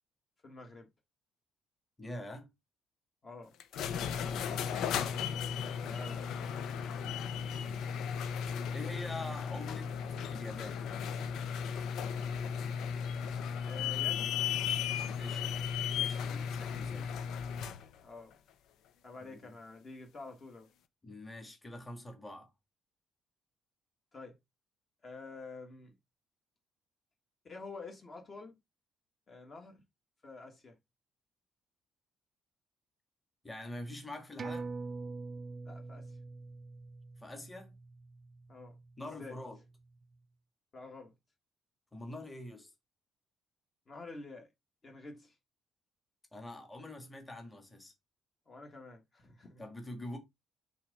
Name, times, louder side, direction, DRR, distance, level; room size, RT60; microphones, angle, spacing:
voice 1, 0.4-0.9 3.2-3.6 5.8-6.3 13.7-14.3 18.0-18.4 19.0-20.7 24.1-24.4 25.0-25.9 27.4-28.6 29.3-29.8 30.2-30.8 35.6-36.2 38.5-39.4 40.7-41.1 43.9-44.5 44.8-45.4 48.5-49.6, left 3 dB, 25° left, 1.5 m, -48 dB
voice 2, 2.0-2.5 3.9-5.1 8.7-10.0 10.3-10.8 15.2-15.4 16.0-17.2 19.2-19.6 21.0-22.5 33.4-34.7 37.2-37.7 39.0-39.6 41.9-42.7 46.3-47.9 49.6-50.2, left 1 dB, 10° left, 1.6 m, -45 dB
sound 1, 3.6-17.8, left 7 dB, 70° left, 0.9 m, -35 dB
sound 2, 34.4-39.3 39.7-39.8, right 3 dB, 30° right, 0.6 m, -44 dB
5.8 x 3.6 x 5.3 m
cardioid pair, 170°, 0 cm